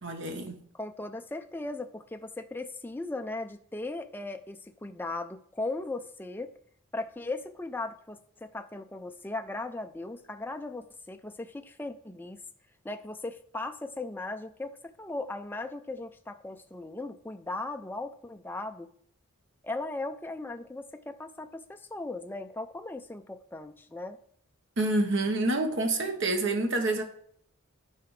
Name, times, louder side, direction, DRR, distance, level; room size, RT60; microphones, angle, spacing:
voice 1, 0.0-0.6 24.8-27.0, right 2 dB, 60° right, 5 dB, 1.1 m, -27 dB
voice 2, 0.7-6.5 6.9-12.4 12.8-18.9 19.6-24.2, left 2 dB, 10° left, 6 dB, 0.4 m, -38 dB
13.5 x 4.8 x 3.2 m, 0.62 s
head